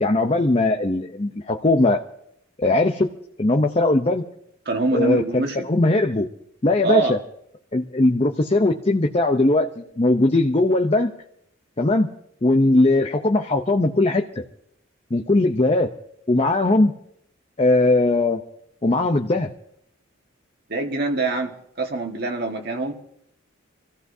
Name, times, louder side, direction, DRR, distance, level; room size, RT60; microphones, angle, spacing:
voice 1, 0.0-2.0 2.6-3.1 3.4-4.2 4.9-6.3 6.6-7.2 7.7-11.1 11.8-12.1 12.4-14.2 15.1-15.9 16.3-16.9 17.6-18.4 18.8-19.5, left 2 dB, 30° left, 3 dB, 0.6 m, -19 dB
voice 2, 4.6-5.7 6.8-7.2 20.7-21.5 21.8-22.9, right 3 dB, 50° right, 3 dB, 1.6 m, -24 dB
27.0 x 15.0 x 2.7 m, 0.73 s
head